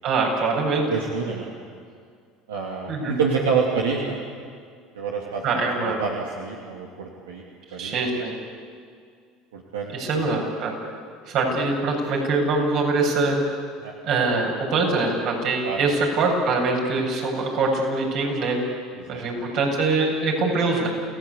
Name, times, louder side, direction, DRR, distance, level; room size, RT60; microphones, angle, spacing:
voice 1, 0.0-0.9 2.9-3.2 5.4-6.0 7.8-8.3 9.9-10.7 11.3-13.4 14.0-18.6 19.1-20.9, right 3 dB, 60° right, 0 dB, 7.8 m, -23 dB
voice 2, 0.9-1.5 2.5-4.2 4.9-5.6 6.0-7.4 7.7-8.0 9.5-10.3 13.8-13.9 15.6-15.8 19.1-19.2, right 5 dB, 85° right, -1 dB, 2.6 m, -27 dB
29.0 x 17.5 x 8.5 m, 2.2 s
hypercardioid pair, 75°, 0 cm